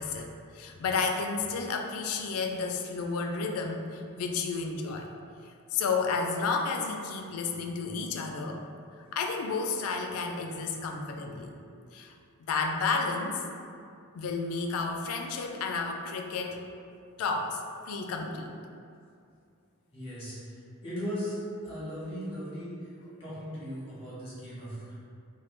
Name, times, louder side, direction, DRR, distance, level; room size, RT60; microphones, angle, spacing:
voice 1, 0.0-5.1 5.7-8.6 9.1-11.5 11.9-12.1 12.5-13.4 14.1-16.6 17.2-17.6 17.9-18.5, left 4 dB, 70° left, 3 dB, 0.3 m, -31 dB
voice 2, 19.9-20.3 20.8-21.3 21.6-22.7 23.2-24.9, equal, 25° left, -10 dB, 1.2 m, -37 dB
3.1 x 2.2 x 3.2 m, 2.4 s
head